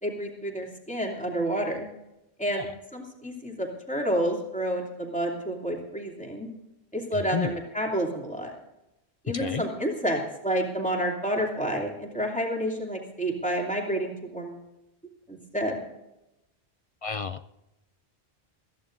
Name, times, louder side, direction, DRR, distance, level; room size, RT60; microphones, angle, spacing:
voice 1, 0.0-1.9 2.4-6.5 6.9-8.6 9.2-14.6 15.3-15.8, equal, 5° left, -1 dB, 2.7 m, -29 dB
voice 2, 7.1-7.6 9.3-9.6 17.0-17.5, left 5 dB, 50° left, 11 dB, 0.4 m, -31 dB
21.0 x 14.5 x 2.6 m, 0.93 s
omnidirectional pair, 1.1 m